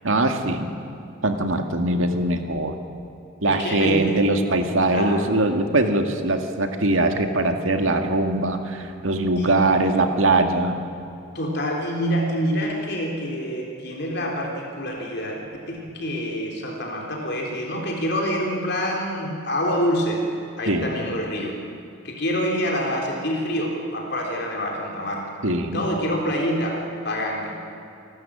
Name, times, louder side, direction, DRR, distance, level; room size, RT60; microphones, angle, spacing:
voice 1, 0.0-0.7 1.2-2.8 3.4-10.8 20.7-20.9 25.4-25.8, right 2 dB, 75° right, 5 dB, 2.0 m, -21 dB
voice 2, 3.5-4.2 4.9-5.3 9.4-9.5 11.3-20.2 20.6-21.5 22.0-25.3 25.7-27.6, equal, 55° left, -1 dB, 3.6 m, -26 dB
28.5 x 12.5 x 8.8 m, 2.7 s
head